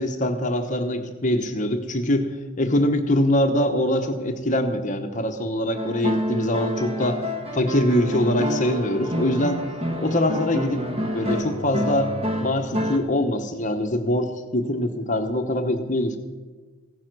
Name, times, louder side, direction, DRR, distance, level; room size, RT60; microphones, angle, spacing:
voice 1, 0.0-2.3 2.6-7.3 7.5-9.7 10.0-10.8 11.1-12.1 12.4-16.2, left 1 dB, 35° left, 6 dB, 1.0 m, -23 dB
sound 1, 5.8-13.0, left 1 dB, 30° right, 1.2 m, -28 dB
16.5 x 9.8 x 6.2 m, 1.4 s
head